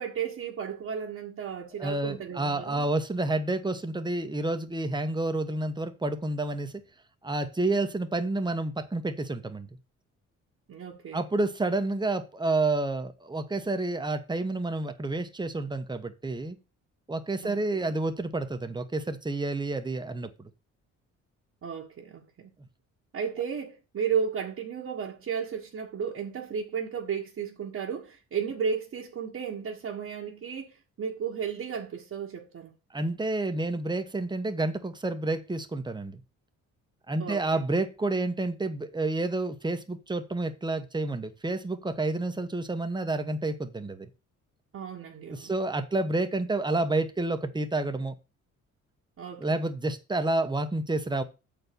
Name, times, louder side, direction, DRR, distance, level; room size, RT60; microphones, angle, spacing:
voice 1, 0.0-2.9 10.7-11.2 17.4-17.9 21.6-22.5 23.1-32.7 37.2-37.4 44.7-45.5 49.2-49.6, right 7 dB, 50° right, 1.5 m, -34 dB
voice 2, 1.8-6.7 7.2-9.7 11.1-16.6 17.1-20.5 32.9-36.2 37.1-44.1 45.3-48.1 49.4-51.2, right 2 dB, 15° right, 1.2 m, -29 dB
7.5 x 4.6 x 6.8 m
cardioid pair, 90°, 30 cm